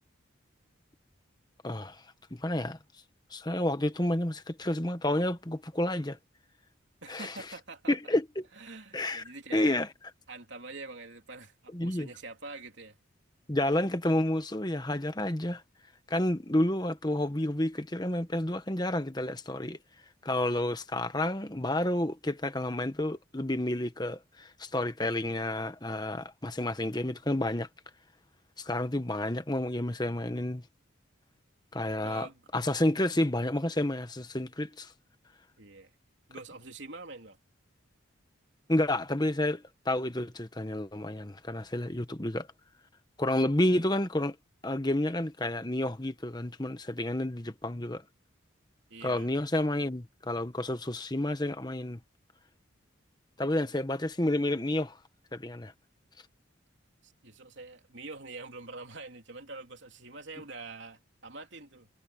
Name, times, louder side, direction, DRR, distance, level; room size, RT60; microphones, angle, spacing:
voice 1, 1.6-2.0 2.4-2.8 3.3-6.2 7.1-7.3 7.9-8.4 8.9-9.2 9.5-9.9 11.7-12.1 13.5-15.6 16.1-19.8 20.2-27.7 28.6-30.6 31.7-34.9 38.7-42.5 43.2-44.4 44.6-48.0 49.0-52.0 53.4-55.0 55.3-55.7, left 1 dB, 20° left, 1.2 m, -30 dB
voice 2, 7.0-8.1 8.5-9.8 10.3-13.0 32.0-32.4 35.6-35.9 36.3-37.4 43.6-43.8 48.9-49.4 53.6-53.7 57.0-61.9, right 3 dB, 65° right, 3.3 m, -45 dB
head